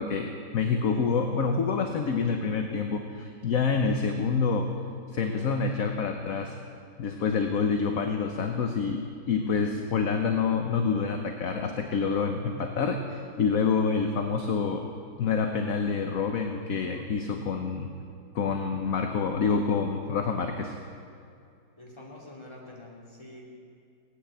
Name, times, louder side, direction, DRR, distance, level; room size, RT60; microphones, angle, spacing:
voice 1, 0.0-4.7 5.1-6.5 7.0-14.9 15.2-17.9 18.3-20.8, left 5 dB, 55° left, 5 dB, 1.2 m, -27 dB
voice 2, 21.8-23.6, left 1 dB, 15° left, -3 dB, 3.0 m, -46 dB
18.0 x 9.2 x 8.6 m, 2.3 s
omnidirectional pair, 1.9 m